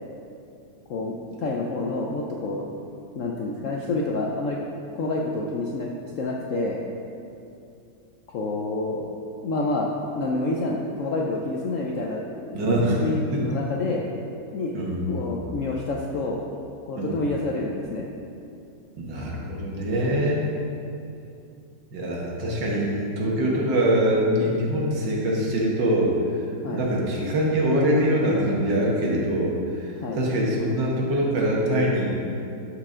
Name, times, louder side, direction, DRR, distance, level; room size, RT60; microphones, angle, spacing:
voice 1, 0.9-2.7 3.1-4.6 4.9-5.9 6.2-6.8 8.3-9.1 9.4-9.9 10.1-12.6 13.0-14.0 14.5-14.7 15.1-16.4 16.9-18.1 26.6-26.9 30.0-30.2, left 2 dB, 85° left, -2 dB, 0.6 m, -28 dB
voice 2, 12.5-13.0 13.5-13.6 14.7-15.0 17.0-17.2 19.0-20.5 21.9-26.1 26.7-32.1, right 1 dB, 65° right, -3 dB, 1.8 m, -23 dB
12.5 x 4.9 x 3.7 m, 2.6 s
omnidirectional pair, 2.1 m